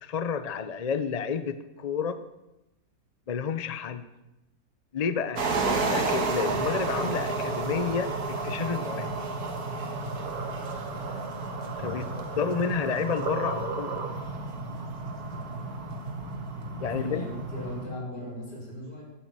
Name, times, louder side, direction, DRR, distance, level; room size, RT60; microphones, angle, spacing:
voice 1, 0.0-2.2 3.3-4.1 4.9-9.1 11.8-13.9 16.8-17.2, left 6 dB, 40° left, 11 dB, 0.5 m, -30 dB
sound 1, 5.4-17.8, right 4 dB, 65° right, 2.1 m, -33 dB
sound 2, 6.4-17.9, right 1 dB, 40° right, 3.2 m, -38 dB
sound 3, 9.4-14.5, right 6 dB, 85° right, 1.9 m, -38 dB
voice 2, 16.8-19.0, left 1 dB, 80° left, -4 dB, 6.1 m, -38 dB
13.0 x 9.8 x 7.5 m, 0.93 s
omnidirectional pair, 1.8 m